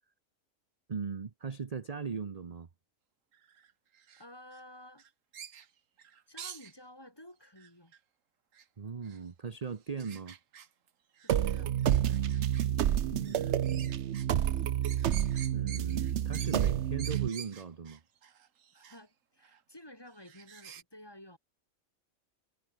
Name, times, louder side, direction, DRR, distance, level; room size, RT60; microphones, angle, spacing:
voice 1, 0.9-2.7 8.8-10.4 13.0-14.0 15.5-18.0, right 5 dB, 35° right, 0.9 m, -39 dB
sound 1, 3.3-4.6 5.0-6.7 7.6-8.0 8.5-8.7 9.0-9.2 10.0-10.9 11.1-12.7 13.2-14.3 14.6-19.0 19.4-19.6 20.1-20.8, right 8 dB, 90° right, 1.5 m, -49 dB
voice 2, 4.2-5.0 6.3-7.9 11.2-11.7 18.7-21.4, left 1 dB, 20° left, 4.1 m, -52 dB
sound 2, 11.3-17.3, right 10 dB, 65° right, 1.0 m, -29 dB
omnidirectional pair, 1.3 m